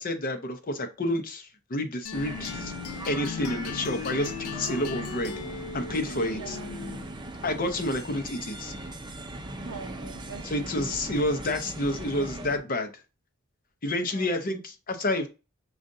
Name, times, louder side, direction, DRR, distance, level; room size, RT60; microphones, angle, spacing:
voice 1, 0.0-2.7 3.1-5.4 5.7-6.6 7.4-8.7 10.4-12.9 13.8-15.3, left 1 dB, 40° left, 0.7 m, -29 dB
sound 1, 2.1-7.2, left 6 dB, 85° left, 0.4 m, -37 dB
sound 2, 2.1-12.6, right 1 dB, 20° right, 0.5 m, -40 dB
voice 2, 6.3-7.0 9.6-11.0 14.1-14.4, right 3 dB, 85° right, 0.9 m, -43 dB
6.3 x 2.4 x 2.6 m
head